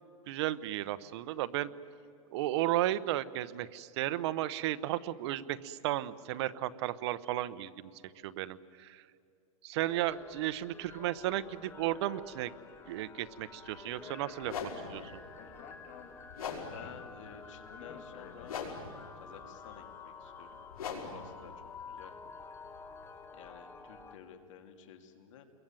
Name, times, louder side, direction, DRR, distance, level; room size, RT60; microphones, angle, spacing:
voice 1, 0.3-1.7 2.3-7.9 8.2-9.1 9.6-12.5 12.9-15.1, right 14 dB, 50° right, 14 dB, 0.9 m, -34 dB
sound 1, 9.9-24.2, left 4 dB, 15° left, 1.4 m, -50 dB
sound 2, 13.6-13.8 14.4-23.2, left 6 dB, 85° left, 5.7 m, -44 dB
Speech, 13.8-18.9, left 7 dB, 35° left, 2.8 m, -53 dB
voice 2, 16.7-18.6 19.1-20.6 21.0-22.1 23.3-25.4, left 8 dB, 60° left, 6 dB, 2.9 m, -52 dB
28.0 x 22.5 x 9.0 m, 2.4 s
supercardioid pair, 155°, 18 cm